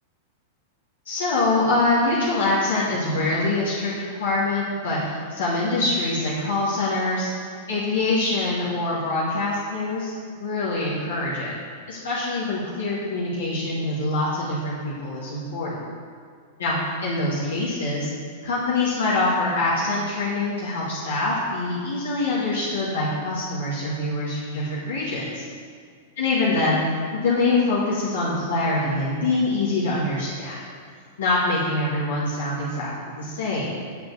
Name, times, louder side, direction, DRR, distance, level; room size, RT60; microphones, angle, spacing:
voice 1, 1.1-7.3 7.7-11.5 11.9-15.8 16.6-18.1 18.4-25.5 26.2-26.8 27.1-30.6 31.2-33.8, left 2 dB, 60° left, -8 dB, 1.9 m, -24 dB
9.3 x 4.3 x 6.9 m, 2.1 s
figure-of-eight pair, 95°, 0 cm